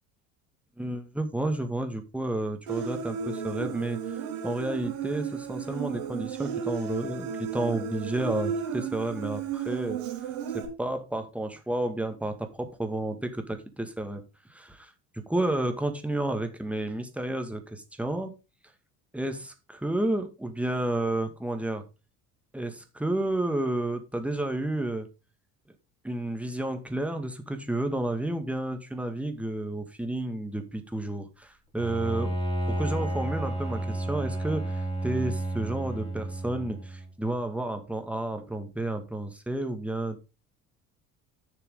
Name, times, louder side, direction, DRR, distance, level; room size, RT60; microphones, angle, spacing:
voice 1, 0.8-10.0 10.5-14.2 14.5-18.3 19.1-21.8 22.5-25.1 26.0-40.2, right 1 dB, 5° right, 2.0 m, -31 dB
Human voice, 2.7-10.6, right 7 dB, 70° right, 3.4 m, -34 dB
Bowed string instrument, 31.8-37.1, right 1 dB, 10° left, 4.0 m, -31 dB
10.0 x 6.8 x 3.9 m
hypercardioid pair, 65°, 42 cm